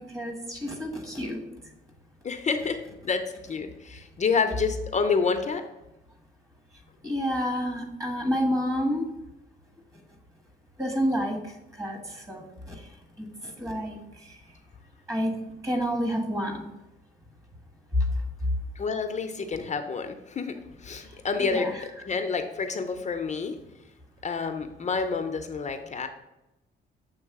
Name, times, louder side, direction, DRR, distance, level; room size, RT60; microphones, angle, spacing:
voice 1, 0.0-1.5 7.0-9.0 10.8-11.4 11.8-12.8 13.2-14.0 14.2-14.4 15.1-15.3 15.6-16.7 21.4-21.8, equal, 15° right, 3 dB, 1.4 m, -29 dB
voice 2, 2.2-5.6 18.8-23.6 24.2-26.1, left 5 dB, 35° left, 7 dB, 0.6 m, -29 dB
7.2 x 3.2 x 4.7 m, 0.96 s
cardioid pair, 90°, 20 cm